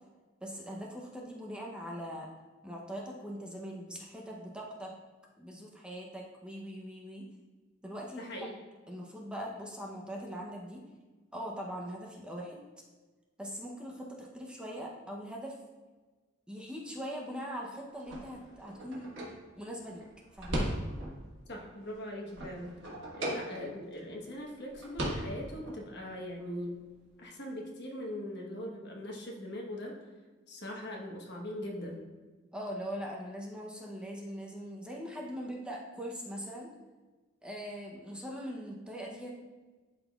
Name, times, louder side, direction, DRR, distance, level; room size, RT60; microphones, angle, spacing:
voice 1, 0.4-2.3 2.6-4.9 5.4-7.3 7.8-8.3 8.9-10.8 11.3-12.6 13.4-15.6 16.5-19.1 19.6-20.0 20.3-20.7 32.5-36.7 37.4-39.3, equal, 5° right, -2 dB, 0.7 m, -41 dB
voice 2, 8.2-8.6 21.5-22.7 23.1-26.8 27.2-30.0 30.5-32.0, left 1 dB, 60° left, 0 dB, 1.2 m, -41 dB
sound 1, 18.0-21.3 21.7-24.0 24.3-24.4 24.7-25.8, right 1 dB, 70° right, 1.5 m, -38 dB
11.5 x 3.9 x 2.3 m, 1.3 s
head